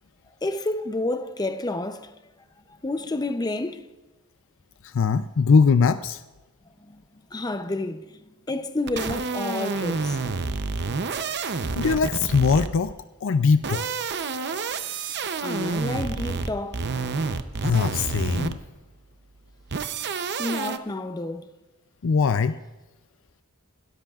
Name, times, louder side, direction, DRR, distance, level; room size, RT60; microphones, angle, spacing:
voice 1, 0.4-2.1 2.8-3.9 6.8-7.0 7.3-8.2 8.5-10.2 15.4-16.9 20.4-21.5, left 2 dB, 20° left, 0.6 m, -29 dB
voice 2, 4.8-6.2 11.8-12.9 13.2-13.9 17.6-18.6 22.0-22.5, left 5 dB, 65° left, 0.5 m, -21 dB
sound 1, 8.9-12.9 13.5-18.8 19.7-20.8, right 4 dB, 50° right, 0.7 m, -29 dB
27.0 x 13.0 x 2.4 m
head